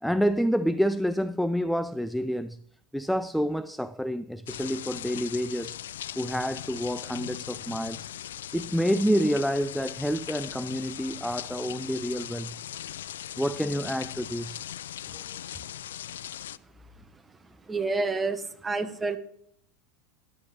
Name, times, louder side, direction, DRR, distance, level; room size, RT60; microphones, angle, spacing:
voice 1, 0.0-2.6 2.9-5.8 6.2-8.1 8.5-12.5 13.4-14.6 15.1-15.2, equal, ahead, 0.4 m, -28 dB
sound 1, 4.5-16.6, left 11 dB, 80° left, 0.3 m, -39 dB
voice 2, 17.7-19.2, right 3 dB, 15° right, 1.1 m, -29 dB
13.0 x 9.8 x 2.9 m
hypercardioid pair, 85°, 0 cm